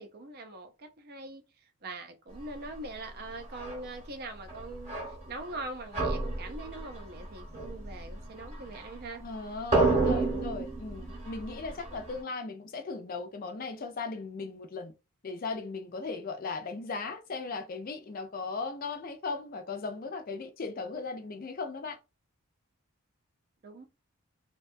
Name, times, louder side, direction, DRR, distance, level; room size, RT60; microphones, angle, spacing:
voice 1, 0.0-1.4 1.8-5.0 5.3-9.2 9.8-10.4 11.8-12.0 23.6-23.9, right 2 dB, 45° right, 0.4 m, -42 dB
sound 1, 3.4-3.8 4.5-5.6 5.9-9.3 9.6-12.2, right 3 dB, 30° right, 0.8 m, -31 dB
voice 2, 9.2-14.9 15.2-22.0, left 4 dB, 40° left, 0.4 m, -37 dB
2.6 x 2.2 x 2.5 m
head